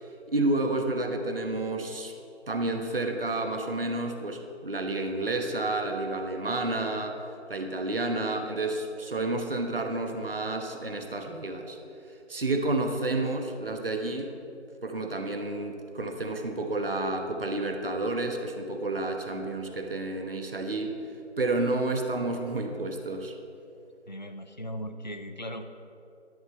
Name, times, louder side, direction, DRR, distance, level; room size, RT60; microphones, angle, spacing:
voice 1, 0.0-2.1 2.5-11.8 12.3-14.3 14.8-21.0 21.4-23.3, right 2 dB, 50° right, 5 dB, 1.0 m, -30 dB
voice 2, 24.1-25.6, equal, 40° left, 7 dB, 0.5 m, -38 dB
11.5 x 5.3 x 7.9 m, 2.7 s
figure-of-eight pair, 170°, 36 cm